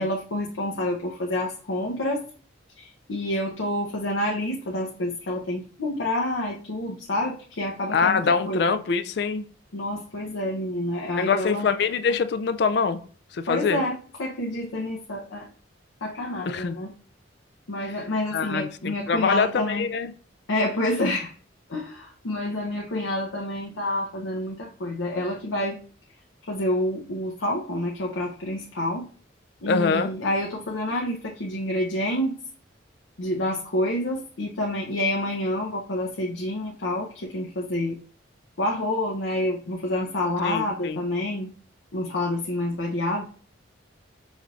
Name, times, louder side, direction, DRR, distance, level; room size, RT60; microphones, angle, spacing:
voice 1, 0.0-2.2 2.8-8.6 9.7-11.7 13.5-15.5 16.0-16.9 17.7-19.8 20.5-21.3 21.7-25.8 26.5-29.1 29.6-32.4 33.2-38.0 38.6-41.5 41.9-43.2, left 1 dB, 80° left, 0.7 m, -28 dB
voice 2, 7.9-9.4 11.2-13.0 13.3-13.8 16.5-16.8 17.8-18.0 18.3-20.1 29.7-30.1 40.4-41.0, left 5 dB, 55° left, 0.3 m, -24 dB
5.3 x 3.3 x 2.4 m
head